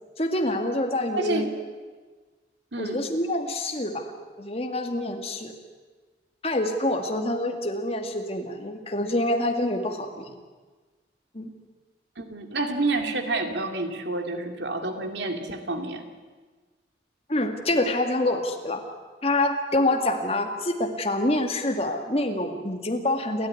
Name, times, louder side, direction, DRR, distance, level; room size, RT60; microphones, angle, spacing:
voice 1, 0.2-1.5 2.8-4.1 4.4-5.5 6.4-10.3 11.3-11.5 17.3-18.8 19.2-23.5, left 1 dB, 30° left, 5 dB, 2.2 m, -26 dB
voice 2, 1.1-1.5 2.7-3.0 12.2-16.1, right 2 dB, 70° right, 5 dB, 2.6 m, -29 dB
29.0 x 13.5 x 9.8 m, 1.4 s
head